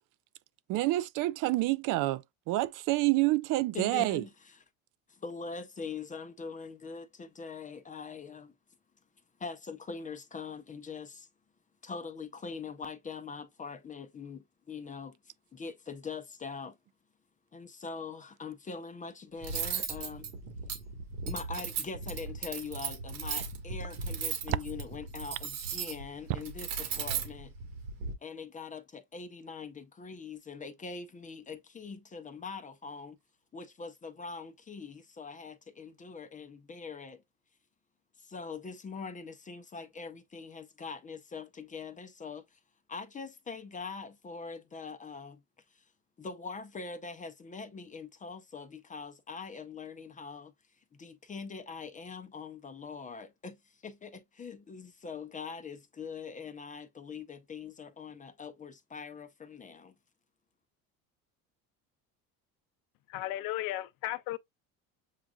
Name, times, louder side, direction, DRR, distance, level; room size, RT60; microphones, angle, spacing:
voice 1, 0.7-4.2 24.5-24.6, right 18 dB, 60° right, 0.5 m, -28 dB
voice 2, 3.7-4.6 5.1-8.5 9.4-11.3 11.8-15.2 15.5-16.8 17.5-20.3 21.3-27.5 28.2-33.2 33.5-37.2 38.2-42.6 42.9-45.4 45.7-45.8 46.2-50.5 50.9-59.9, left 5 dB, 20° left, 0.6 m, -43 dB
Cutlery silverware, 19.4-28.1, right 6 dB, 90° right, 1.6 m, -37 dB
voice 3, 63.1-64.4, left 15 dB, 65° left, 0.6 m, -35 dB
7.3 x 2.5 x 2.3 m
supercardioid pair, 110°, 36 cm